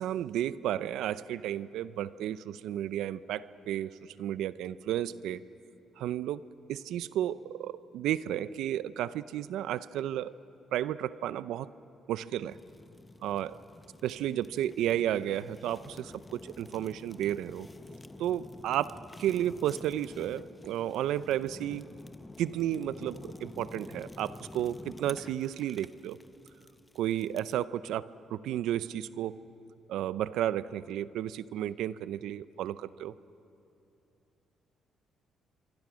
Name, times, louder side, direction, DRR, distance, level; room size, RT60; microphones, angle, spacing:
voice 1, 0.0-5.4 6.0-10.3 10.7-11.7 12.1-12.6 13.2-13.6 14.0-17.7 18.2-21.8 22.4-26.2 27.0-29.4 29.9-33.1, right 11 dB, 85° right, 16 dB, 0.5 m, -33 dB
Fire, 12.5-27.6, left 2 dB, 15° left, 0.8 m, -49 dB
26.0 x 24.5 x 6.3 m, 2.7 s
cardioid pair, 90°, 0 cm